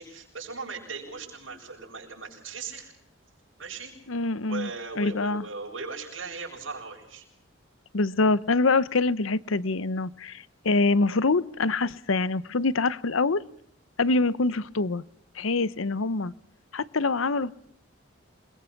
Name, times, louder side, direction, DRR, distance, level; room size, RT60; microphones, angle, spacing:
voice 1, 0.0-2.9 3.6-7.3, right 4 dB, 80° right, 0 dB, 7.4 m, -38 dB
voice 2, 4.1-4.7 5.0-5.4 7.9-13.4 14.0-15.0 15.4-16.3 16.7-17.5, left 3 dB, 85° left, 18 dB, 0.8 m, -25 dB
28.5 x 22.0 x 5.9 m, 0.68 s
head